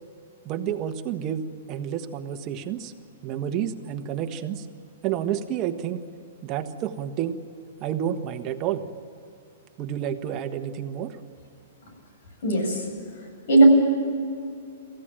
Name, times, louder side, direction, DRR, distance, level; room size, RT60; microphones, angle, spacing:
voice 1, 0.4-1.4 1.7-2.9 3.2-4.7 5.0-6.0 6.4-7.4 7.8-8.8 9.8-11.2, right 10 dB, 30° right, 7 dB, 1.4 m, -29 dB
voice 2, 12.4-12.9 13.5-13.6, right 3 dB, 65° left, 3 dB, 7.7 m, -18 dB
23.0 x 15.5 x 9.1 m, 2.5 s
hypercardioid pair, 150°, 0 cm